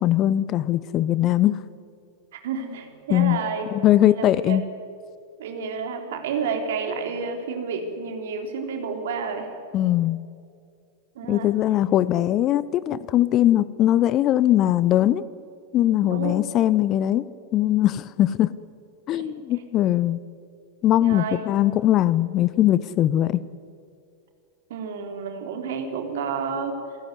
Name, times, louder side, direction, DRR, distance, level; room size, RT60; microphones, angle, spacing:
voice 1, 0.0-1.6 3.1-3.4 3.8-4.6 9.7-10.2 11.3-15.2 15.7-17.2 17.5-18.5 19.1-20.2 20.8-23.5, left 13 dB, 35° left, 19 dB, 0.7 m, -20 dB
voice 2, 2.3-3.7 4.1-4.6 5.4-9.5 11.2-11.5 16.0-16.3 19.1-19.3 21.0-21.4 24.7-26.8, right 5 dB, 55° right, 4 dB, 3.7 m, -30 dB
28.0 x 16.0 x 9.6 m, 2.4 s
figure-of-eight pair, 90°, 0 cm